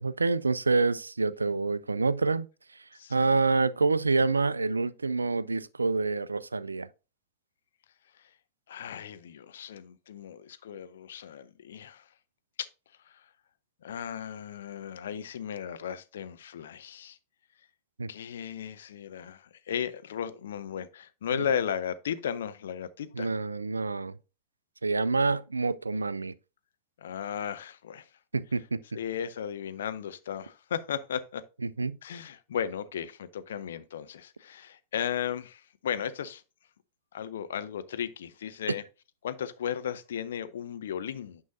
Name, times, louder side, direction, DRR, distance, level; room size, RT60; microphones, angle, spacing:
voice 1, 0.0-2.5 3.1-6.9 18.0-18.1 21.3-21.5 23.1-24.2 24.8-26.3 28.3-28.8 31.6-32.0, right 3 dB, 80° right, 0.3 m, -27 dB
voice 2, 8.7-12.1 12.6-12.7 13.0-13.3 13.8-17.2 18.1-23.3 27.0-28.1 28.9-31.4 32.0-36.4 37.1-38.8 39.2-41.4, left 8 dB, 60° left, 0.6 m, -35 dB
9.3 x 5.5 x 2.6 m
figure-of-eight pair, 90°, 0 cm